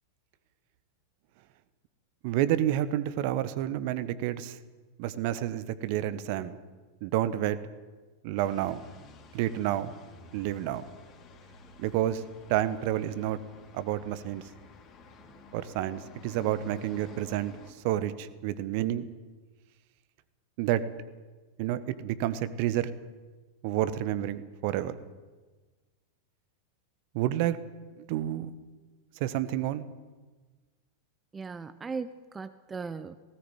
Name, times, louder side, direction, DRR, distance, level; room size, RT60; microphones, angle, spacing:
voice 1, 2.2-4.6 5.0-6.6 7.0-7.6 8.2-8.8 9.3-9.9 10.3-10.8 11.8-12.2 12.5-13.4 13.7-14.4 15.5-17.5 17.8-19.0 20.6-20.8 21.6-22.9 23.6-25.0 27.1-27.6 28.1-28.5 29.2-29.8, right 12 dB, 45° right, 14 dB, 1.3 m, -29 dB
sound 1, 8.4-17.7, left 3 dB, 35° left, 3.7 m, -52 dB
voice 2, 31.3-33.2, right 5 dB, 15° right, 12 dB, 0.8 m, -38 dB
18.0 x 18.0 x 9.1 m, 1.3 s
figure-of-eight pair, 90°, 0 cm